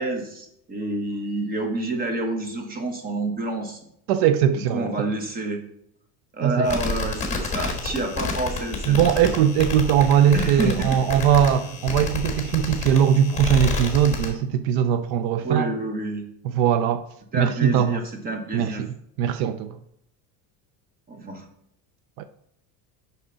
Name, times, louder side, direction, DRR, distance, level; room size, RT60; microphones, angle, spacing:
voice 1, 0.0-3.8 4.7-5.6 6.3-9.1 10.3-11.0 15.4-16.2 17.3-18.8 21.1-21.5, right 2 dB, 20° right, 1.1 m, -28 dB
voice 2, 4.1-5.1 6.4-6.7 8.9-15.7 16.5-18.0 18.5-19.8 22.2-22.3, right 9 dB, 75° right, 0.6 m, -20 dB
sound 1, 6.6-14.3, left 3 dB, 15° left, 1.5 m, -30 dB
7.2 x 5.8 x 4.0 m
cardioid pair, 150°, 40 cm